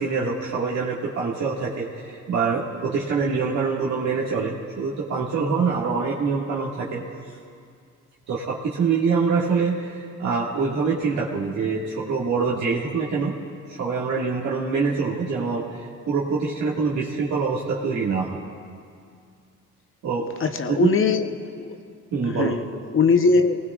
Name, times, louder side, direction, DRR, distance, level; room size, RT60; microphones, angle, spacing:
voice 1, 0.0-7.0 8.3-13.3 13.8-18.4 20.0-20.3 20.8-20.9 22.1-22.5, right 5 dB, 65° right, -6 dB, 1.9 m, -25 dB
voice 2, 20.4-21.3 21.5-21.8 22.2-22.6 22.9-23.6, left 4 dB, 45° left, 7 dB, 0.9 m, -20 dB
26.0 x 19.0 x 2.4 m, 2.3 s
cardioid pair, 90°, 30 cm